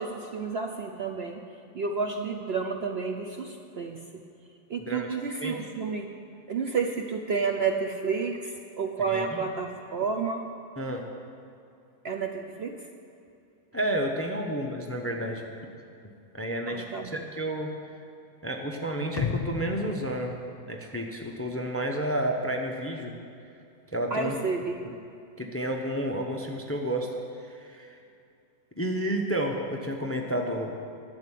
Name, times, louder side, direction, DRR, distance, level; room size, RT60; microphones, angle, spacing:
voice 1, 0.0-1.4 1.7-4.2 4.7-6.1 6.5-10.4 12.0-12.9 16.7-17.2 24.1-24.8, right 5 dB, 55° right, 4 dB, 0.8 m, -30 dB
voice 2, 4.8-5.6 9.1-9.4 10.8-11.1 13.7-15.4 16.3-17.7 18.4-20.4 20.7-23.2 23.9-24.3 24.8-24.9 25.4-28.0 28.8-30.8, right 1 dB, 10° left, 2 dB, 0.6 m, -31 dB
sound 1, 19.2-21.3 21.7-21.8, left 5 dB, 70° left, 0.3 m, -34 dB
11.5 x 7.6 x 10.0 m, 2.6 s
omnidirectional pair, 1.6 m